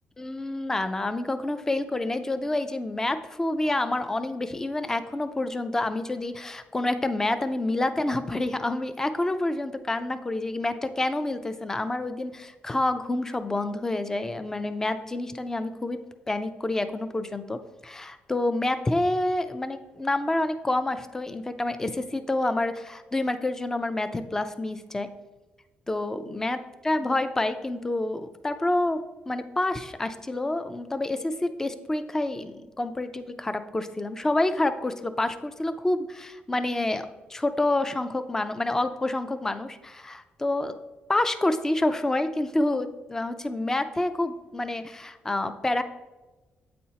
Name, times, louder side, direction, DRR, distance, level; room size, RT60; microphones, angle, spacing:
voice 1, 0.2-16.0 16.3-25.1 25.9-29.0 29.3-40.7 41.1-45.8, left 2 dB, 15° left, 10 dB, 0.4 m, -28 dB
8.4 x 4.3 x 2.8 m, 1.1 s
cardioid pair, 120°, 4 cm